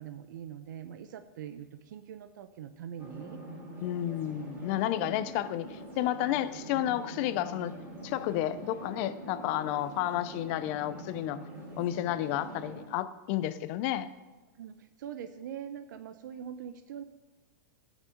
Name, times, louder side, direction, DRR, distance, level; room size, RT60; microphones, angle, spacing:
voice 1, 0.0-3.4 4.7-5.2 14.6-17.0, right 9 dB, 75° right, 9 dB, 0.8 m, -43 dB
sound 1, 3.0-12.9, right 1 dB, 20° right, 3.0 m, -44 dB
voice 2, 3.8-7.7 8.0-11.4 11.8-14.1, left 13 dB, 40° left, 14 dB, 0.7 m, -31 dB
13.0 x 6.1 x 7.9 m, 1.2 s
supercardioid pair, 160°, 10 cm